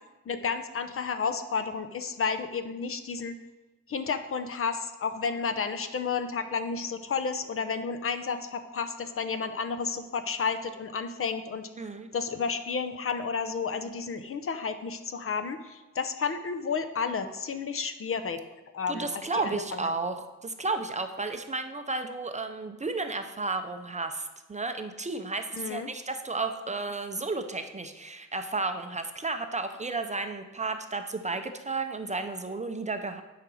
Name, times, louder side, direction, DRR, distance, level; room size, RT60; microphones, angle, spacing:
voice 1, 0.3-3.4 3.9-11.7 12.1-18.4 18.7-19.8 25.5-25.9, left 5 dB, 45° left, 9 dB, 0.7 m, -31 dB
voice 2, 11.8-12.1 18.9-33.2, right 3 dB, 25° right, 7 dB, 0.5 m, -33 dB
9.7 x 5.0 x 6.2 m, 1.2 s
wide cardioid pair, 155°, 31 cm